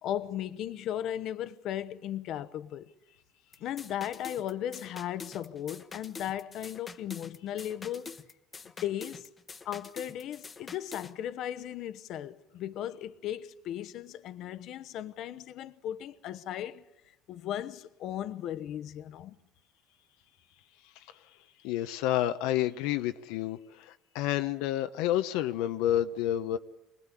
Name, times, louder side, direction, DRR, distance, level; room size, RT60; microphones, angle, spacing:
voice 1, 0.0-2.9 3.6-8.2 8.8-9.3 9.6-16.8 17.3-19.4, left 11 dB, 60° left, 0.9 m, -36 dB
sound 1, 3.5-11.1, left 4 dB, 25° left, 1.1 m, -46 dB
voice 2, 20.8-26.6, left 12 dB, 85° left, 0.9 m, -30 dB
25.5 x 19.0 x 9.9 m
cardioid pair, 125°, 0 cm